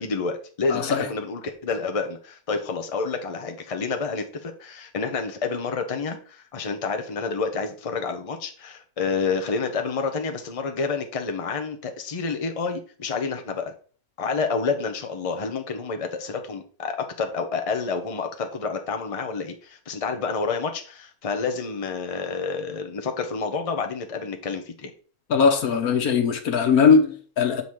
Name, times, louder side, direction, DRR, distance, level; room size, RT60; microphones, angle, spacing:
voice 1, 0.0-13.7 14.2-24.9, left 4 dB, 30° left, 0.8 m, -29 dB
voice 2, 0.7-1.1 25.3-27.6, left 5 dB, 85° left, 1.5 m, -20 dB
7.1 x 4.0 x 4.7 m
omnidirectional pair, 1.5 m